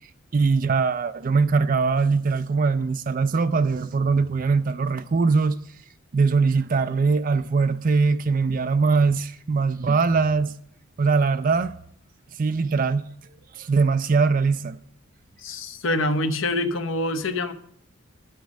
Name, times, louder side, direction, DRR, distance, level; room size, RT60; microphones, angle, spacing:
voice 1, 0.3-5.6 6.1-10.5 11.0-11.7 12.4-13.0 13.6-14.8, right 4 dB, 40° right, 0.4 m, -21 dB
voice 2, 15.4-17.5, left 2 dB, 65° left, 1.0 m, -25 dB
12.0 x 8.1 x 6.4 m
head